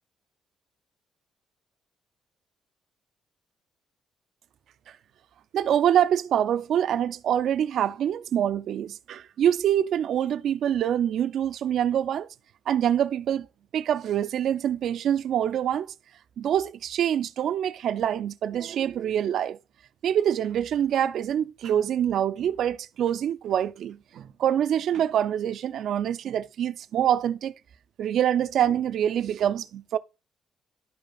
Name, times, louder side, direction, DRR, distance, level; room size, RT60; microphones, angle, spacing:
voice 1, 5.5-12.3 12.7-13.5 13.7-15.9 16.4-19.6 20.0-27.5 28.0-30.0, right 10 dB, 70° right, 0.4 m, -25 dB
12.0 x 5.0 x 2.3 m
cardioid pair, 90°, 0 cm